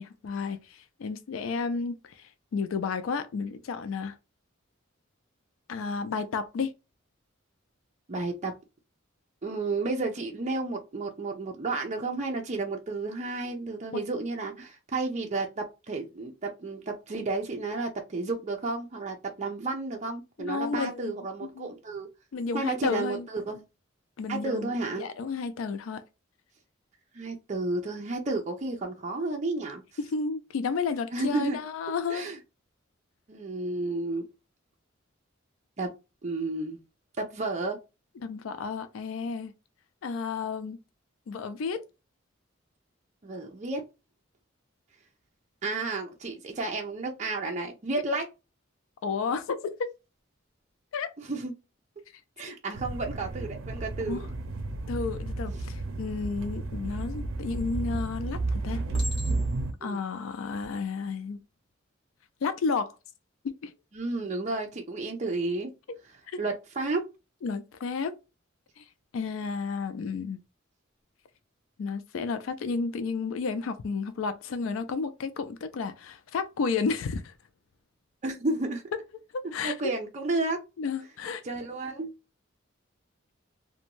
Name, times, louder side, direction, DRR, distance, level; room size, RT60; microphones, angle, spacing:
voice 1, 0.0-4.2 5.7-6.7 13.9-14.0 20.4-21.1 21.4-21.7 22.3-23.3 24.2-26.0 30.0-32.3 38.2-39.5 40.0-40.8 41.3-41.8 49.0-49.9 50.9-51.1 54.1-54.3 54.9-58.8 59.8-61.4 62.4-63.0 63.6-63.7 67.4-68.1 68.8-68.9 69.1-70.4 71.8-77.3 79.3-79.8 80.8-81.4, left 5 dB, 85° left, 0.4 m, -32 dB
voice 2, 8.1-8.5 9.4-22.1 22.5-23.6 24.3-25.1 27.1-29.8 31.1-31.6 32.1-32.4 33.3-34.2 35.8-35.9 36.2-36.8 37.2-37.8 43.2-43.8 45.6-48.3 51.3-51.5 52.4-54.2 59.8-60.0 63.9-65.7 66.4-67.0 78.2-78.8 79.6-80.6 81.4-82.1, right 3 dB, 35° right, 0.5 m, -32 dB
sound 1, 52.7-59.7, right 2 dB, 90° right, 0.5 m, -32 dB
Chink clink, 58.9-59.7 60.5-60.7, left 1 dB, 30° left, 1.0 m, -41 dB
2.5 x 2.2 x 2.9 m
head